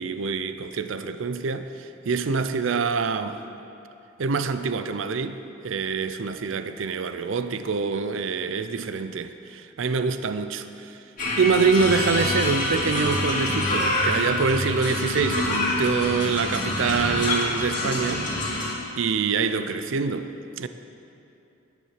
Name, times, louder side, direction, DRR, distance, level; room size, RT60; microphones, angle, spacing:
voice 1, 0.0-3.4 4.2-11.0 11.4-20.7, right 5 dB, 70° right, 0.5 m, -26 dB
sound 1, 11.2-18.7, left 1 dB, 40° left, 2.6 m, -26 dB
10.5 x 9.6 x 6.6 m
head